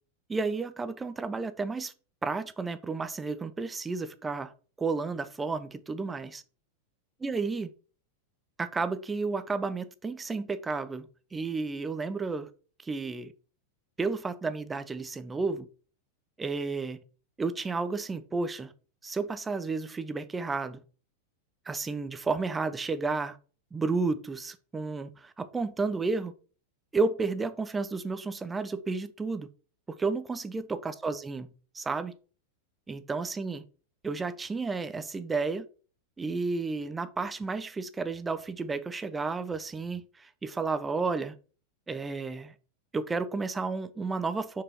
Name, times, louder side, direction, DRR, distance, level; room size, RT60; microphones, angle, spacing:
voice 1, 0.3-1.9 2.2-4.5 4.8-6.4 7.2-7.7 8.6-12.5 12.8-13.3 14.0-15.7 16.4-17.0 17.4-18.7 19.0-20.8 21.7-23.4 23.7-26.3 26.9-29.5 29.9-31.5 31.7-32.1 32.9-33.6 34.0-35.6 36.2-41.3 41.9-42.5 42.9-44.6, right 4 dB, 15° right, 0.7 m, -32 dB
6.2 x 4.7 x 4.5 m
figure-of-eight pair, 90°, 0 cm